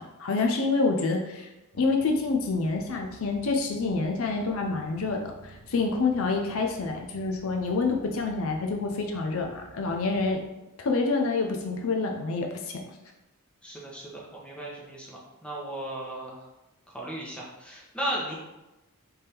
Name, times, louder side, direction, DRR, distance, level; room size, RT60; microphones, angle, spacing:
voice 1, 0.2-1.5 1.8-10.4 10.8-12.6, left 3 dB, 65° left, 3 dB, 0.5 m, -27 dB
sound 1, 1.7-10.3, right 3 dB, 85° right, 0.6 m, -52 dB
voice 2, 13.6-16.4 16.9-18.3, right 1 dB, 5° left, -5 dB, 1.0 m, -36 dB
3.5 x 3.4 x 4.3 m, 1.0 s
head